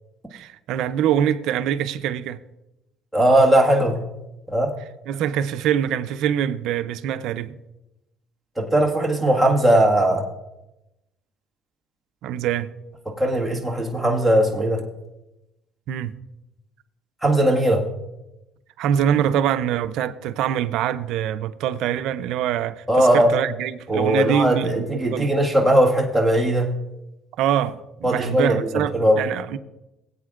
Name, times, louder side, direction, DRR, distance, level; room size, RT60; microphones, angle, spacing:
voice 1, 0.3-2.4 5.1-7.5 12.2-12.7 15.9-16.2 18.8-25.3 27.4-29.6, right 10 dB, 75° right, 0.5 m, -24 dB
voice 2, 3.1-4.0 4.5-4.7 8.6-10.3 13.1-14.8 17.2-17.8 22.9-23.3 23.9-26.7 28.0-29.2, right 1 dB, ahead, 1.7 m, -19 dB
18.5 x 8.5 x 2.5 m
cardioid pair, 110°, 0 cm